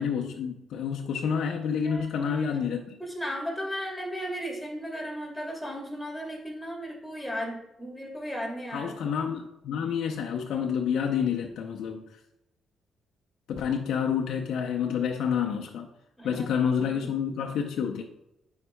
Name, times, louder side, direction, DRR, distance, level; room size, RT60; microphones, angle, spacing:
voice 1, 0.0-3.0 8.7-12.0 13.5-15.9 16.2-18.0, left 7 dB, 75° left, 2 dB, 0.6 m, -29 dB
voice 2, 1.8-2.6 3.0-8.9 16.2-16.4 16.7-17.1, equal, 5° left, -2 dB, 2.6 m, -36 dB
9.5 x 5.6 x 2.3 m, 0.87 s
cardioid pair, 90°, 0 cm